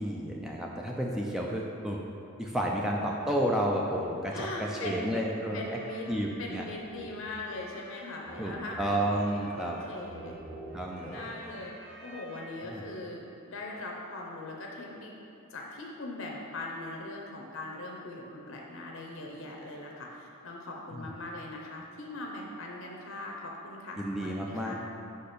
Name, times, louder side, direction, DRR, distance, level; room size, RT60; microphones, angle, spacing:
voice 1, 0.0-2.0 2.4-5.8 6.1-6.6 8.4-9.8 10.7-11.3 12.6-12.8 20.9-21.1 24.0-24.7, right 1 dB, ahead, -2 dB, 0.4 m, -31 dB
voice 2, 4.3-5.2 5.5-6.1 6.4-8.9 9.3-10.4 11.1-15.1 15.5-24.7, left 2 dB, 60° left, -1 dB, 0.7 m, -40 dB
sound 1, 5.3-13.2, right 1 dB, 40° right, 1.0 m, -48 dB
5.3 x 4.3 x 5.1 m, 2.7 s
head